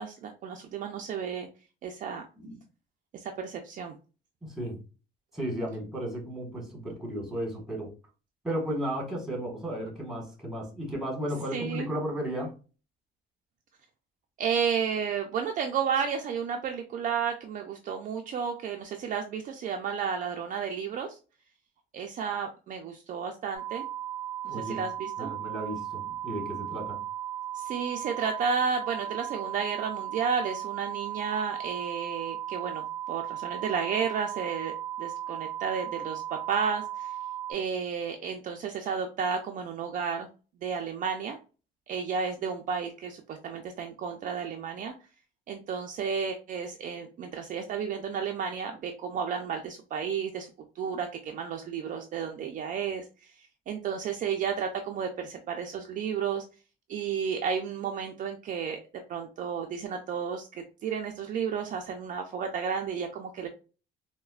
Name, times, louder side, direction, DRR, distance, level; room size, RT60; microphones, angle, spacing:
voice 1, 0.0-1.5 1.8-2.2 3.1-4.0 11.5-11.9 14.4-21.1 21.9-23.9 24.4-25.3 27.5-37.1 37.5-40.3 40.6-41.4 41.9-44.9 45.5-50.5 50.8-56.4 56.9-58.8 59.1-63.5, right 6 dB, 40° right, 3 dB, 0.4 m, -32 dB
voice 2, 4.4-4.8 5.3-7.9 8.4-12.5 24.5-24.8 25.2-27.0, right 1 dB, ahead, -1 dB, 1.3 m, -34 dB
sound 1, 23.5-37.5, right 11 dB, 55° left, 1.5 m, -36 dB
4.0 x 2.1 x 2.3 m, 0.34 s
cardioid pair, 130°, 20 cm